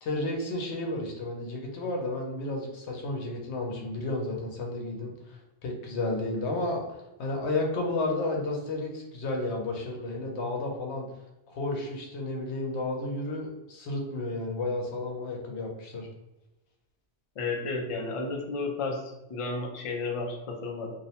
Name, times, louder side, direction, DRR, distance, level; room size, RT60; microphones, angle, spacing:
voice 1, 0.0-6.8 7.2-11.1 11.5-16.1, left 2 dB, 85° left, 1 dB, 0.9 m, -32 dB
voice 2, 17.4-19.0 19.3-20.9, left 3 dB, 55° left, 1 dB, 0.3 m, -32 dB
2.6 x 2.0 x 2.8 m, 0.99 s
omnidirectional pair, 1.1 m